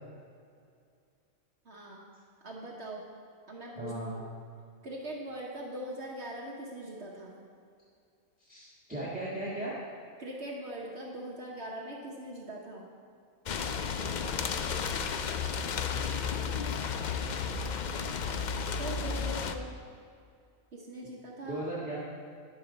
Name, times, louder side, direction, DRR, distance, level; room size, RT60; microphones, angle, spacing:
voice 1, 1.6-2.0 2.4-3.0 3.5-4.2 4.8-7.3 10.2-12.9 18.7-19.7 20.7-21.6, right 1 dB, 55° right, -2 dB, 1.3 m, -41 dB
voice 2, 3.8-4.2 8.4-9.7 21.4-22.0, right 1 dB, 5° right, -8 dB, 1.6 m, -36 dB
sound 1, 13.5-19.5, left 6 dB, 75° left, 0.4 m, -33 dB
10.5 x 9.0 x 4.0 m, 2.3 s
omnidirectional pair, 1.4 m